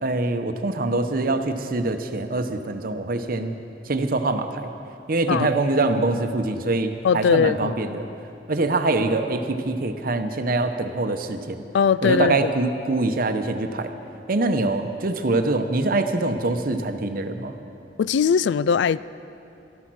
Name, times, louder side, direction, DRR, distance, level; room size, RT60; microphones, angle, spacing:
voice 1, 0.0-3.5 3.9-4.7 5.1-8.1 8.5-11.6 12.0-13.9 14.3-17.5, right 2 dB, 55° right, 7 dB, 0.9 m, -24 dB
voice 2, 7.0-7.7 11.7-12.5 18.0-19.0, left 6 dB, 75° left, 18 dB, 0.3 m, -20 dB
14.5 x 13.0 x 6.2 m, 2.7 s
head